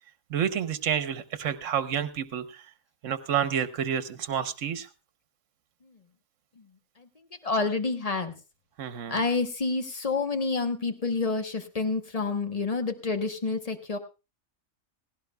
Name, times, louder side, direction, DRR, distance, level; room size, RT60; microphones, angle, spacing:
voice 1, 0.3-2.7 3.0-4.9 8.8-9.2, right 8 dB, 65° right, 12 dB, 1.2 m, -29 dB
voice 2, 7.0-8.3 9.1-14.0, left 3 dB, 30° left, 7 dB, 1.0 m, -29 dB
17.0 x 16.5 x 2.3 m, 0.29 s
omnidirectional pair, 1.4 m